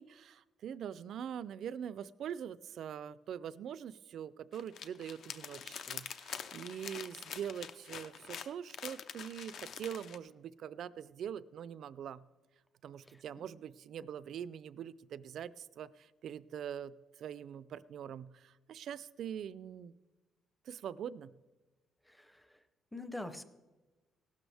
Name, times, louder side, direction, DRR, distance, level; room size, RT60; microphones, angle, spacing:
voice 1, 0.0-12.2 12.8-20.0 20.6-21.3, right 9 dB, 55° right, 17 dB, 0.4 m, -43 dB
sound 1, 4.5-10.2, left 8 dB, 55° left, 0.6 m, -45 dB
voice 2, 13.0-13.5 22.0-22.6 22.9-23.4, left 2 dB, 5° left, 10 dB, 0.6 m, -45 dB
17.0 x 12.5 x 3.4 m, 1.2 s
cardioid pair, 170°, 0 cm